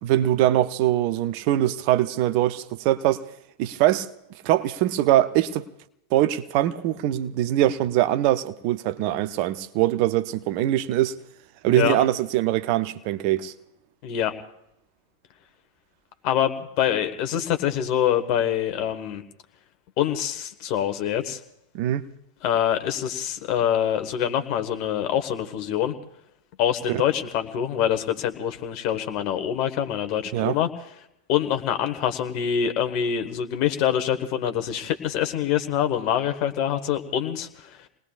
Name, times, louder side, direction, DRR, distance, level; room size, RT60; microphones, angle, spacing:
voice 1, 0.0-3.2 3.6-4.1 4.4-5.7 6.1-11.2 11.6-13.5 21.7-22.0 26.9-27.0 30.3-30.6, right 13 dB, 45° right, 0.6 m, -22 dB
voice 2, 14.0-14.3 16.2-19.2 20.0-21.4 22.4-25.9 26.6-30.7 31.3-37.8, left 9 dB, 45° left, 1.4 m, -25 dB
29.0 x 19.5 x 2.5 m
figure-of-eight pair, 90°, 0 cm